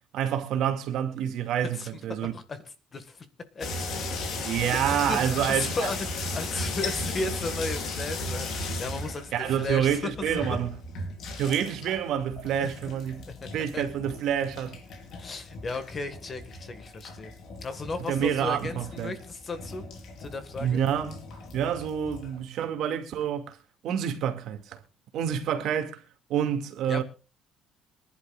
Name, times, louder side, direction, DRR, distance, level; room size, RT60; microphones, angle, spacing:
voice 1, 0.1-2.3 4.4-5.9 9.3-10.8 11.4-13.3 13.5-14.8 18.1-19.1 20.6-21.2 21.5-23.6 23.8-24.8 25.1-26.0 26.3-27.0, right 9 dB, 60° right, 2.3 m, -28 dB
voice 2, 2.2-2.6 2.9-3.3 3.6-4.1 4.7-10.4 12.6-12.7 13.3-13.8 15.1-17.3 17.6-19.8 20.2-20.8 26.9-27.0, left 3 dB, 25° left, 1.8 m, -35 dB
sound 1, 3.6-22.4, left 2 dB, 50° left, 4.4 m, -36 dB
25.0 x 11.5 x 2.5 m
cardioid pair, 170°, 0 cm